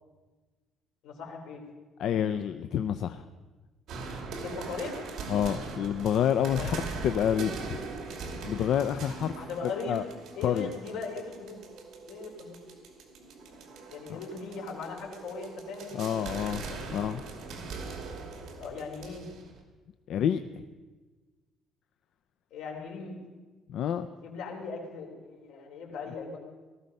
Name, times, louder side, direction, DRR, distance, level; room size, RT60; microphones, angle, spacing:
voice 1, 1.0-1.6 4.4-5.1 6.6-6.8 9.4-10.0 10.4-11.6 12.1-12.6 13.9-16.8 18.6-19.3 22.5-23.2 24.2-26.4, left 4 dB, 75° left, 0 dB, 3.8 m, -39 dB
voice 2, 2.0-3.2 5.3-6.8 7.0-7.8 8.4-9.3 9.9-10.0 10.4-10.7 15.9-16.6 16.9-17.2 20.1-20.4 23.7-24.1, left 9 dB, 50° left, 9 dB, 0.5 m, -28 dB
sound 1, 3.9-19.6, right 4 dB, 55° right, 2.6 m, -41 dB
18.5 x 14.0 x 5.4 m, 1.3 s
cardioid pair, 180°, 0 cm